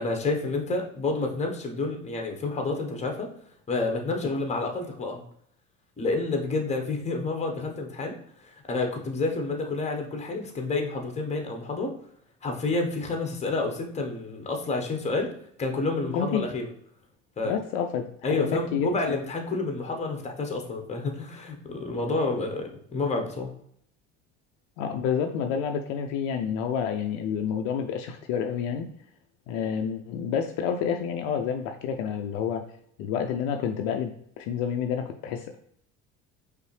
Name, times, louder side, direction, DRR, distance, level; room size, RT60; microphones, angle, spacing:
voice 1, 0.0-3.3 3.7-5.2 6.0-8.2 8.7-11.9 12.4-15.3 15.6-16.7 17.4-17.5 18.2-23.5, left 3 dB, 15° left, 3 dB, 1.0 m, -29 dB
voice 2, 16.1-16.5 17.4-18.9 24.8-28.9 29.5-32.6 33.0-35.6, left 7 dB, 60° left, 5 dB, 0.5 m, -29 dB
5.2 x 2.0 x 3.2 m, 0.68 s
hypercardioid pair, 65°, 40 cm